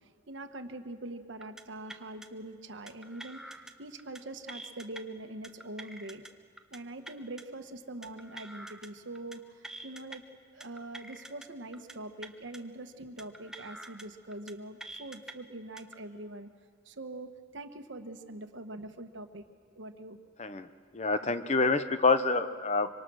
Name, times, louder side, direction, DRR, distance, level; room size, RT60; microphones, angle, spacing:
voice 1, 0.0-6.3 6.7-10.2 10.5-16.5 16.8-20.2 21.2-21.3, right 2 dB, 65° right, 7 dB, 1.3 m, -43 dB
sound 1, 1.4-1.6 1.9-2.3 2.9-3.7 4.0-4.2 4.5-5.0 5.4-6.3 6.6-6.8 7.1-7.4 8.0-8.9 9.2-9.4 9.6-10.2 10.6-11.5 11.7-11.9 12.2-12.6 13.2-14.0 14.3-14.5 14.8-15.3 15.8-16.0, right 1 dB, 5° right, 0.8 m, -46 dB
voice 2, 20.9-22.9, left 3 dB, 35° left, 10 dB, 0.7 m, -27 dB
25.5 x 24.5 x 6.3 m, 2.1 s
head